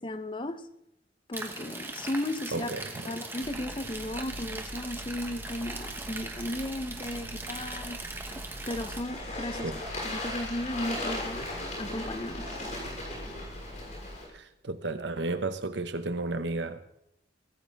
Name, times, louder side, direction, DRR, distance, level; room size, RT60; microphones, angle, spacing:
voice 1, 0.0-0.7 1.3-2.7 3.1-8.0 8.3-9.7 10.0-11.5 11.8-12.5, left 1 dB, 25° left, 0.8 m, -35 dB
sound 1, 1.3-9.0, right 2 dB, 10° right, 1.4 m, -40 dB
voice 2, 2.5-3.1 9.6-9.8 14.3-16.8, right 2 dB, 70° right, 1.0 m, -33 dB
sound 2, 3.4-14.2, equal, 70° left, 4.4 m, -44 dB
Bird / Water, 7.5-14.2, left 1 dB, 40° left, 6.3 m, -38 dB
24.0 x 14.5 x 3.5 m
head